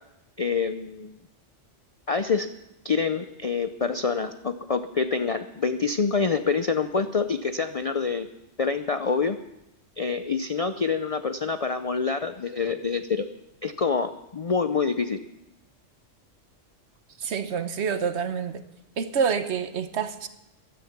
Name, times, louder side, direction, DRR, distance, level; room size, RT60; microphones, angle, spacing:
voice 1, 0.4-1.1 2.1-2.5 2.8-8.3 8.6-9.4 10.0-13.3 13.6-15.2, left 5 dB, 50° left, 9 dB, 0.4 m, -26 dB
voice 2, 17.2-18.6 19.0-20.3, right 6 dB, 65° right, 11 dB, 1.1 m, -27 dB
15.0 x 11.0 x 5.9 m, 0.92 s
omnidirectional pair, 1.3 m